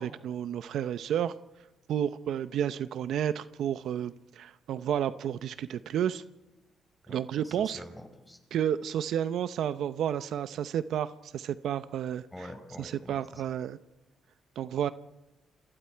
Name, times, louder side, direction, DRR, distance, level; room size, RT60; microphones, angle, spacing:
voice 1, 0.0-1.3 1.9-6.2 7.1-7.8 8.5-12.2 12.8-13.8 14.6-14.9, right 9 dB, 75° right, 13 dB, 0.7 m, -31 dB
voice 2, 7.1-8.4 12.3-13.4, left 1 dB, 10° left, 6 dB, 5.0 m, -46 dB
29.0 x 25.5 x 4.6 m, 1.0 s
cardioid pair, 90°, 0 cm